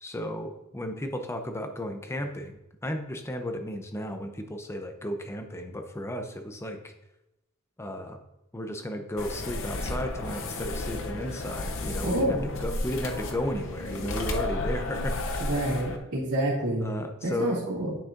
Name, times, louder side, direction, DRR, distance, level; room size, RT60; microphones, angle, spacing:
voice 1, 0.0-6.9 7.8-8.2 8.5-15.2 16.8-17.7, left 1 dB, 10° left, 6 dB, 0.6 m, -34 dB
sound 1, 9.2-16.0, left 2 dB, 60° left, 0.7 m, -33 dB
voice 2, 12.0-12.5 15.4-16.9 17.2-18.0, right 1 dB, 75° right, -11 dB, 2.2 m, -28 dB
10.0 x 5.9 x 2.5 m, 0.90 s
head